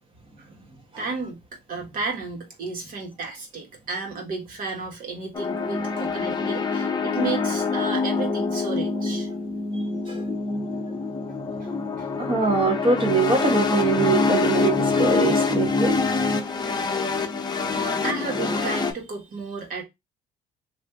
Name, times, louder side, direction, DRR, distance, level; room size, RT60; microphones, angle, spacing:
voice 1, 1.0-1.4 1.7-9.3 11.5-11.7 12.0-12.1 16.1-16.2 17.0-17.2 17.7-19.8, right 4 dB, 55° right, 1.6 m, -33 dB
sound 1, 5.3-18.9, left 4 dB, 25° left, 0.7 m, -25 dB
voice 2, 9.7-10.2 12.2-16.0, right 3 dB, 30° right, 1.1 m, -23 dB
3.2 x 2.7 x 3.4 m
cardioid pair, 110°, 17 cm